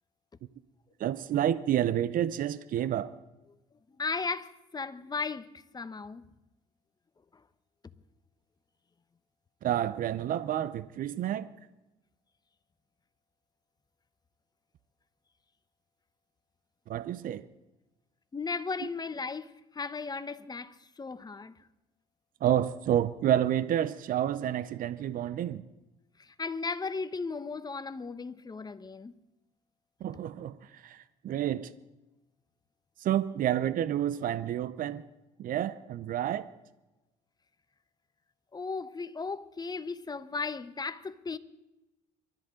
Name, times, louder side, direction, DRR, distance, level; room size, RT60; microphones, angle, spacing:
voice 1, 1.0-3.1 9.6-11.5 16.9-17.5 22.4-25.6 30.0-31.7 33.0-35.1 35.4-36.5, right 11 dB, 55° right, 0.8 m, -29 dB
voice 2, 4.0-5.5 5.7-6.2 18.3-21.5 26.2-29.1 38.5-41.4, left 4 dB, 25° left, 1.1 m, -36 dB
28.0 x 13.5 x 3.9 m
supercardioid pair, 70°, 17 cm